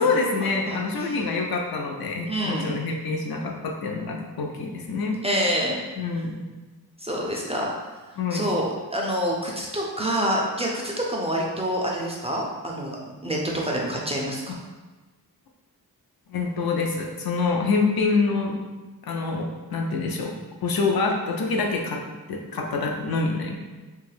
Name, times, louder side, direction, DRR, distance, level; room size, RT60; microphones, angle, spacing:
voice 1, 0.0-5.2 6.0-6.3 8.2-8.5 16.3-18.5 19.1-20.3 20.6-22.0 22.3-23.6, left 4 dB, 70° left, 1 dB, 0.5 m, -26 dB
voice 2, 0.7-1.3 2.3-2.7 5.2-5.8 7.0-7.7 8.3-14.6, equal, 15° right, -3 dB, 0.3 m, -27 dB
2.5 x 2.3 x 3.2 m, 1.2 s
wide cardioid pair, 100°, 38 cm